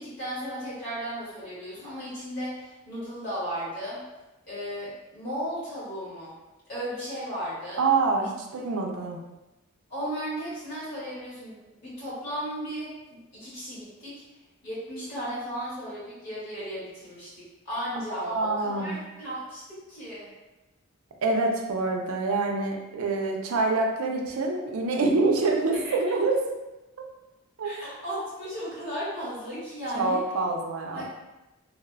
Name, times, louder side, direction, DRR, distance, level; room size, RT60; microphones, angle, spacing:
voice 1, 0.0-4.0 4.5-6.3 6.7-7.9 9.9-14.2 14.6-20.3 24.3-24.4 25.8-25.9 27.6-30.2 30.9-31.0, equal, 50° left, -10 dB, 1.5 m, -35 dB
voice 2, 7.8-9.2 18.1-19.0 21.2-26.4 27.6-27.7 30.0-31.0, right 3 dB, 80° right, 1 dB, 0.4 m, -26 dB
3.1 x 2.0 x 2.3 m, 1.0 s
head